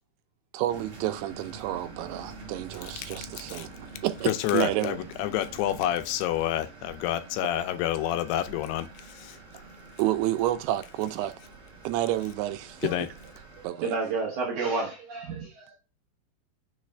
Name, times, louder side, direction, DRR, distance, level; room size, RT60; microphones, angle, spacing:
voice 1, 0.5-3.7 4.0-5.0 10.0-11.3 11.8-12.9 13.6-13.9, right 14 dB, 85° right, 2.6 m, -29 dB
sound 1, 0.7-13.7, right 3 dB, 50° right, 1.6 m, -47 dB
voice 2, 2.8-3.2 3.5-3.7 4.3-9.6 12.8-13.1, left 12 dB, 85° left, 2.6 m, -29 dB
voice 3, 13.8-15.7, right 4 dB, 70° right, 1.9 m, -30 dB
6.1 x 2.5 x 3.2 m
omnidirectional pair, 4.6 m